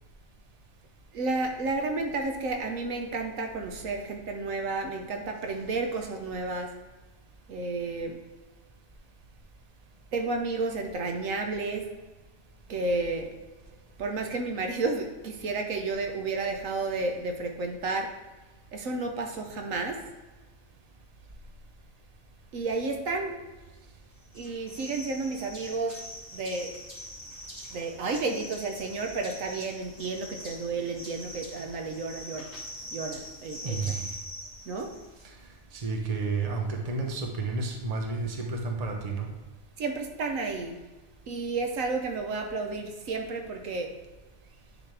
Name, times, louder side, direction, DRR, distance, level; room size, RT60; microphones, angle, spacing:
voice 1, 1.1-6.7 7.5-8.2 10.1-11.9 12.7-13.3 14.0-18.1 18.7-20.1 22.5-23.4 24.3-26.1 26.3-26.7 27.7-32.5 32.9-34.0 34.7-35.0 39.8-40.8 41.3-43.9, right 3 dB, 75° right, 4 dB, 1.2 m, -31 dB
sound 1, 24.3-35.2, equal, 15° left, 2.2 m, -43 dB
voice 2, 33.6-34.1 35.7-39.3, right 4 dB, 30° right, 2 dB, 1.0 m, -31 dB
10.0 x 4.2 x 3.4 m, 1.2 s
omnidirectional pair, 1.4 m